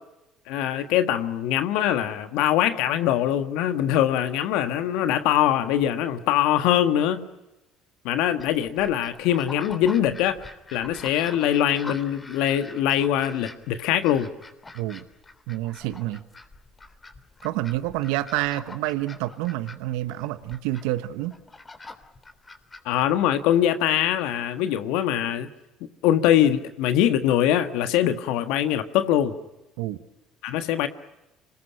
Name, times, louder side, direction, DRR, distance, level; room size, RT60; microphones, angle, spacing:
voice 1, 0.5-7.3 8.0-10.4 10.7-14.3 22.8-25.5 26.0-29.3 30.4-30.9, left 11 dB, 75° left, 1.6 m, -23 dB
sound 1, 8.4-23.6, left 3 dB, 20° left, 3.5 m, -45 dB
voice 2, 15.5-16.2 17.4-21.3 29.8-30.0, right 16 dB, 80° right, 1.2 m, -28 dB
26.0 x 21.0 x 10.0 m
supercardioid pair, 80°, 0 cm